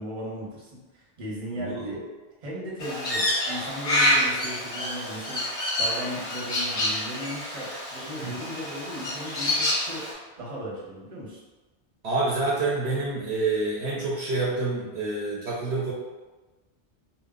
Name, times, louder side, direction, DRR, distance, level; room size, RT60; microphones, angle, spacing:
voice 1, 0.0-2.0 2.4-5.5 5.8-10.0 10.4-11.4, equal, 35° right, -6 dB, 0.8 m, -36 dB
voice 2, 1.5-1.9 8.2-8.3 12.0-15.9, right 3 dB, 70° right, -5 dB, 0.8 m, -27 dB
Crow, 2.8-10.1, left 1 dB, 40° left, 0.5 m, -27 dB
2.1 x 2.0 x 3.5 m, 1.2 s
omnidirectional pair, 1.2 m